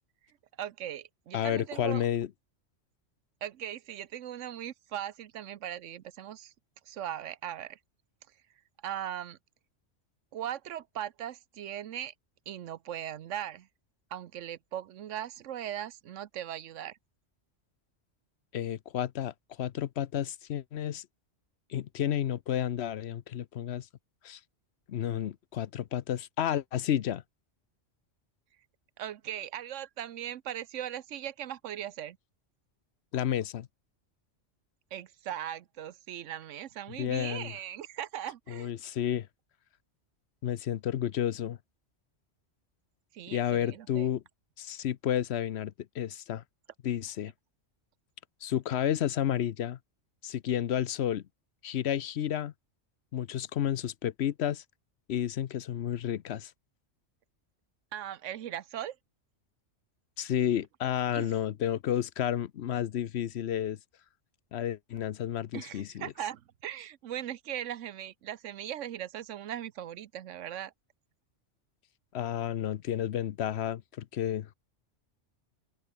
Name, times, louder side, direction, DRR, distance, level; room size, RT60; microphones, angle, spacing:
voice 1, 0.6-2.0 3.4-6.5 6.9-7.8 8.8-9.4 10.3-12.1 12.5-13.7 14.1-17.0 29.0-32.2 34.9-38.7 43.1-44.1 57.9-59.0 61.1-61.3 65.5-70.7, right 11 dB, 85° right, 1.1 m, -39 dB
voice 2, 1.3-2.3 18.5-19.3 19.6-21.1 21.7-23.9 24.2-24.4 24.9-27.2 33.1-33.7 37.0-37.5 38.5-39.3 40.4-41.6 43.3-44.2 44.6-46.4 46.8-47.3 48.4-49.8 50.2-51.2 51.6-52.5 53.1-54.6 55.1-56.5 60.2-63.8 64.5-66.1 72.1-74.5, left 10 dB, 65° left, 0.9 m, -31 dB
open air
omnidirectional pair, 1.2 m